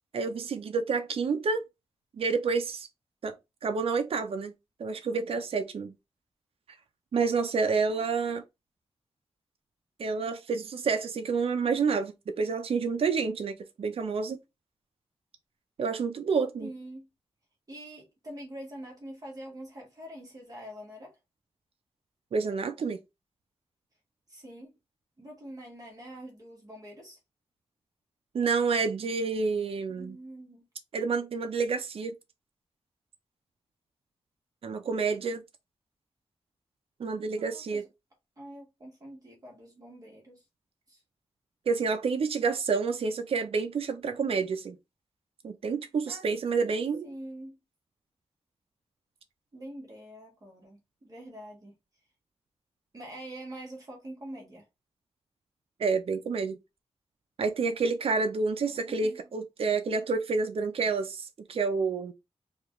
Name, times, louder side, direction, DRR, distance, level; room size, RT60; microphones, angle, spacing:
voice 1, 0.1-1.6 2.2-2.9 3.2-3.4 3.6-4.5 4.8-5.9 7.1-8.4 10.0-14.4 15.8-16.7 22.3-23.0 28.3-30.2 30.9-32.1 34.6-35.4 37.0-37.8 41.7-44.8 45.4-47.1 55.8-56.6 57.4-62.1, right 4 dB, 60° right, 0.5 m, -29 dB
voice 2, 7.9-8.3 16.6-17.1 17.7-21.2 24.3-24.7 25.2-27.2 29.9-30.7 37.4-37.8 38.4-40.4 40.9-41.0 46.1-47.6 49.5-51.7 52.9-54.7 58.6-59.2, right 1 dB, 35° right, 1.4 m, -45 dB
4.8 x 2.4 x 3.0 m
wide cardioid pair, 150°, 11 cm